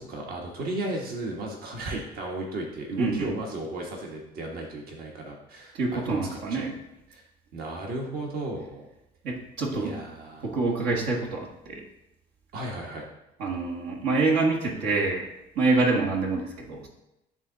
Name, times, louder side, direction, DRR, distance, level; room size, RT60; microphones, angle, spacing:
voice 1, 0.0-6.7 7.1-7.2 7.5-8.9 9.7-10.5 12.5-13.1, right 2 dB, 60° right, 0 dB, 1.3 m, -35 dB
voice 2, 3.0-3.3 5.7-6.7 9.2-9.9 10.4-11.8 13.4-15.3 15.5-16.9, right 3 dB, 80° right, -2 dB, 1.5 m, -26 dB
10.5 x 3.7 x 3.9 m, 0.90 s
cardioid pair, 110°, 17 cm